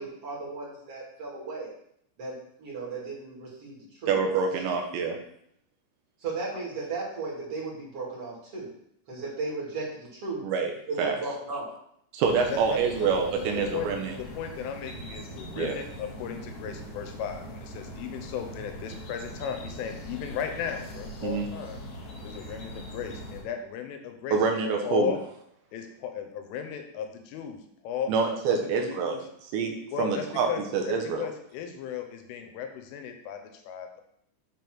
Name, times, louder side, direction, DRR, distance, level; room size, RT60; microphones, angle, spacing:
voice 1, 0.0-1.7 2.2-4.2 4.6-4.8 6.2-8.7 9.1-10.4 10.9-11.7, right 3 dB, 40° right, -5 dB, 2.4 m, -35 dB
voice 2, 4.1-5.2 10.4-10.7 11.0-11.2 12.1-14.1 15.5-15.8 21.2-21.5 24.3-25.1 28.1-29.2 29.5-31.3, right 5 dB, 75° right, 3 dB, 3.0 m, -26 dB
sound 1, 12.2-23.4, equal, 65° left, 2.0 m, -41 dB
voice 3, 12.4-21.8 22.2-24.4 24.8-25.2 25.7-29.2 29.9-34.0, left 8 dB, 90° left, 5 dB, 3.4 m, -36 dB
8.4 x 3.6 x 6.1 m, 0.72 s
omnidirectional pair, 5.6 m